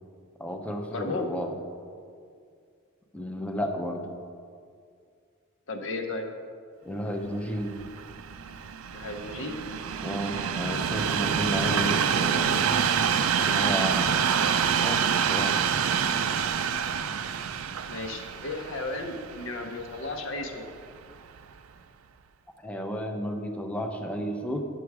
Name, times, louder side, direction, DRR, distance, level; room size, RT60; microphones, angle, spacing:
voice 1, 0.4-1.5 3.1-4.1 6.8-7.8 10.0-12.8 13.4-14.2 14.8-15.6 22.6-24.7, equal, 5° left, 4 dB, 0.7 m, -32 dB
voice 2, 0.9-1.3 5.7-6.3 8.9-9.7 15.9-16.2 17.9-20.7, left 2 dB, 65° left, 4 dB, 1.0 m, -34 dB
Train, 7.5-20.7 21.4-21.5, right 7 dB, 85° right, 0.5 m, -27 dB
9.9 x 7.0 x 4.8 m, 2.2 s
head